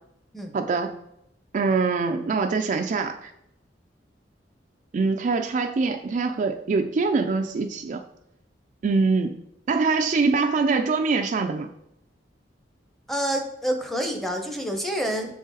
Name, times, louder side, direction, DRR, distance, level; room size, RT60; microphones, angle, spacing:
voice 1, 0.5-1.0 1.5-3.2 4.9-8.0 8.8-11.7, right 4 dB, 45° right, 6 dB, 0.3 m, -24 dB
voice 2, 13.1-15.4, equal, ahead, 4 dB, 0.7 m, -28 dB
6.8 x 3.8 x 4.0 m, 0.79 s
head